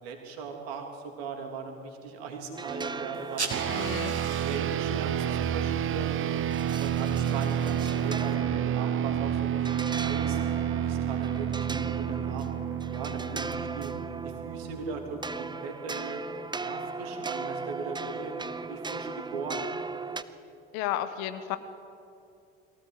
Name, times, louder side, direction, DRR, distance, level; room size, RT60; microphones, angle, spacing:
voice 1, 0.0-3.9 4.4-6.1 6.7-10.4 10.7-12.5 12.9-13.9 14.2-16.2 16.6-18.3 18.7-19.7, right 4 dB, 65° right, 3 dB, 3.3 m, -39 dB
sound 1, 2.5-20.2, right 4 dB, 15° right, 0.9 m, -38 dB
sound 2, 3.1-8.3, right 3 dB, 90° right, 1.7 m, -42 dB
sound 3, 3.5-15.2, right 10 dB, 40° right, 0.9 m, -30 dB
voice 2, 3.7-4.1 20.7-21.6, left 12 dB, 60° left, 11 dB, 1.3 m, -32 dB
23.0 x 16.5 x 8.0 m, 2.6 s
figure-of-eight pair, 55°, 33 cm